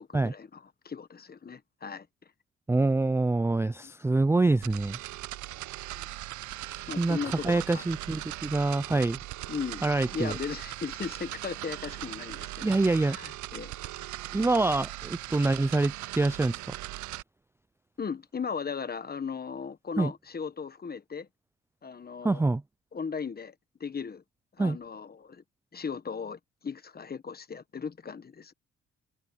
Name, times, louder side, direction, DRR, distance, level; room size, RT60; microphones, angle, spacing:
voice 1, 0.0-2.1 6.0-6.1 6.9-7.8 9.5-14.1 18.0-21.3 21.8-22.4 22.9-23.5 23.8-24.2 24.6-25.4 25.7-28.5, left 6 dB, 30° left, 1.3 m, -37 dB
voice 2, 2.7-5.0 6.7-7.2 7.4-9.2 9.8-10.4 12.6-13.2 14.3-16.6 20.0-20.1 22.2-22.6 24.6-24.8, right 2 dB, 10° right, 0.4 m, -26 dB
sound 1, 4.6-17.2, right 16 dB, 70° right, 0.5 m, -39 dB
cardioid pair, 90°, 30 cm